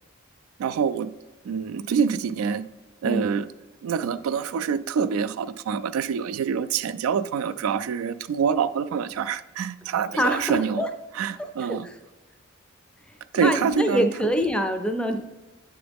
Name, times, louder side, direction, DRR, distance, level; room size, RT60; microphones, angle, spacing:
voice 1, 0.6-1.1 1.4-2.6 3.0-3.5 3.8-10.8 11.1-11.9 13.3-14.1, right 6 dB, 80° right, 13 dB, 0.3 m, -26 dB
voice 2, 10.1-10.9 11.4-11.9 13.3-15.2, equal, 5° left, 6 dB, 0.4 m, -25 dB
8.7 x 3.9 x 3.4 m, 1.1 s
head